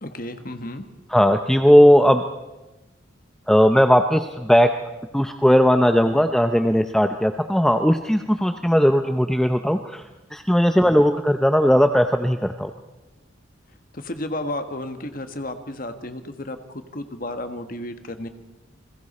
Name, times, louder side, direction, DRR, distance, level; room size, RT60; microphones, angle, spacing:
voice 1, 0.0-0.8 10.8-11.0 13.9-18.3, left 1 dB, 45° left, 8 dB, 1.4 m, -32 dB
voice 2, 1.1-2.2 3.5-4.7 5.1-10.0 10.3-12.7, equal, 5° left, 6 dB, 0.6 m, -17 dB
29.0 x 21.0 x 4.3 m, 1.1 s
head